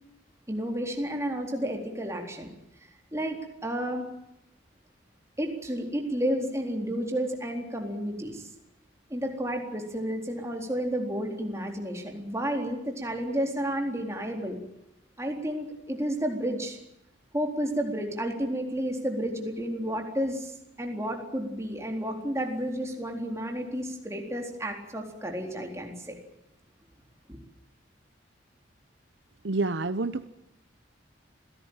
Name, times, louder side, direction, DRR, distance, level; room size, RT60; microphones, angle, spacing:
voice 1, 0.5-2.5 3.1-3.4 3.6-4.1 5.4-8.5 9.1-14.6 15.2-16.8 17.3-26.2 27.3-27.4, equal, 15° right, 2 dB, 4.0 m, -31 dB
voice 2, 29.4-30.3, right 3 dB, 70° right, 12 dB, 0.9 m, -28 dB
27.0 x 17.5 x 9.0 m, 0.84 s
head